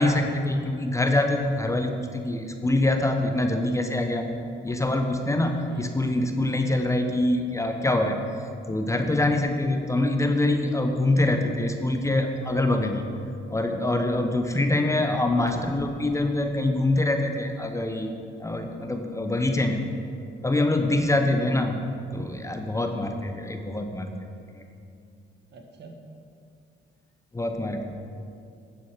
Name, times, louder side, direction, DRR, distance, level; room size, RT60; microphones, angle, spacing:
voice 1, 0.0-4.2 4.6-8.2 8.7-13.1 13.5-18.1 18.4-19.8 20.4-21.8 22.1-24.1 24.5-24.6 27.3-27.8, left 2 dB, 15° left, 5 dB, 0.8 m, -24 dB
sound 1, 15.4-17.3, right 1 dB, 15° right, 1.2 m, -45 dB
voice 2, 21.1-21.5 25.5-25.9, right 2 dB, 60° right, 3 dB, 1.5 m, -43 dB
9.5 x 6.9 x 6.2 m, 2.4 s
cardioid pair, 90°, 20 cm